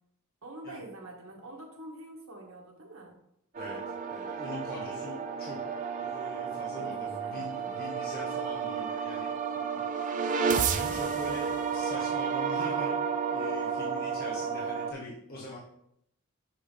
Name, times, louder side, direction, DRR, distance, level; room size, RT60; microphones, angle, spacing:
voice 1, 0.4-3.1 6.8-7.8, right 1 dB, 70° right, 0 dB, 1.5 m, -46 dB
sound 1, 3.5-14.9, right 6 dB, 35° right, 0.4 m, -32 dB
voice 2, 4.1-5.6 6.0-9.8 10.4-12.9 13.3-15.6, left 2 dB, 45° left, -5 dB, 1.1 m, -43 dB
6.2 x 4.9 x 3.3 m, 0.76 s
head